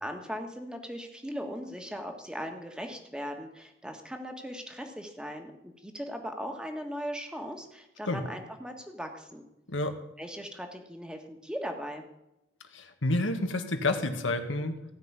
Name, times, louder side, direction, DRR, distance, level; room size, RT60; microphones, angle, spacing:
voice 1, 0.0-9.5 10.2-12.0, equal, 5° right, 4 dB, 1.6 m, -39 dB
voice 2, 12.7-14.7, left 2 dB, 90° left, 6 dB, 1.8 m, -29 dB
16.5 x 5.9 x 9.8 m, 0.90 s
head